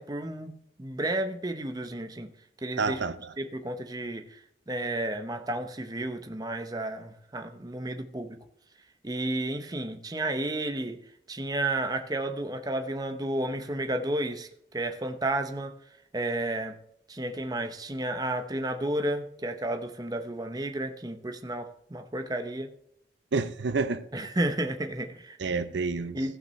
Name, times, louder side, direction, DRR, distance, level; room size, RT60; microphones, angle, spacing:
voice 1, 0.0-2.3 2.6-3.0 3.4-8.4 9.0-11.0 11.3-15.7 16.1-16.8 17.1-22.7 24.1-25.4 26.1-26.4, right 1 dB, 20° right, 0.7 m, -32 dB
voice 2, 2.8-3.3 23.3-24.0 25.4-26.2, right 4 dB, 80° right, 0.6 m, -29 dB
16.0 x 5.9 x 3.1 m
head